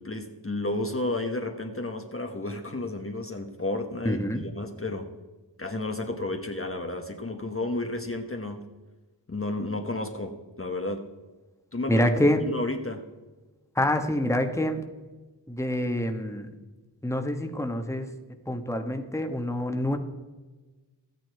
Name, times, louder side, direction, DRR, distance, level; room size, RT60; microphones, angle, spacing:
voice 1, 0.0-5.1 5.6-8.6 9.3-11.0 11.7-12.0 12.4-13.0, left 2 dB, 30° left, 5 dB, 1.1 m, -32 dB
voice 2, 4.0-4.4 11.9-12.4 13.8-14.8 15.5-16.5 17.0-18.1 18.5-20.0, left 1 dB, 5° left, 5 dB, 1.2 m, -26 dB
13.0 x 9.4 x 4.6 m, 1.2 s
wide cardioid pair, 45°, 43 cm